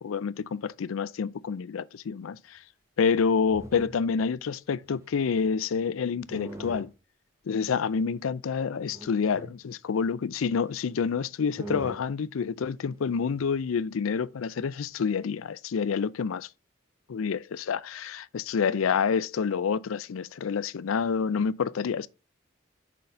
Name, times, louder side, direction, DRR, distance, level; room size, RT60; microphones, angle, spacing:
voice 1, 0.0-2.6 3.0-6.9 7.5-16.5 17.1-22.1, left 6 dB, 90° left, 0.4 m, -28 dB
sound 1, 3.2-4.2 4.8-5.6 6.3-6.9 7.8-7.9 8.9-9.5 10.7-10.8 11.0-11.1 11.6-12.0 13.3-13.5, equal, 15° right, 1.1 m, -41 dB
6.4 x 4.1 x 5.4 m
head